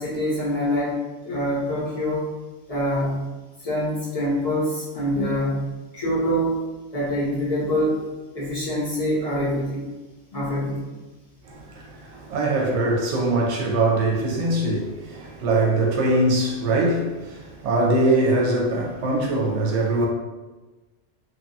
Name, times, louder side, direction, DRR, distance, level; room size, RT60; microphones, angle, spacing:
voice 1, 0.0-2.3 2.7-3.3 3.6-6.6 6.9-8.0 8.3-9.9 10.3-10.9, equal, 35° left, 0.8 m, -25 dB
voice 2, 11.5-20.1, right 2 dB, 70° right, 0.9 m, -22 dB
2.8 x 2.2 x 2.6 m
omnidirectional pair, 1.2 m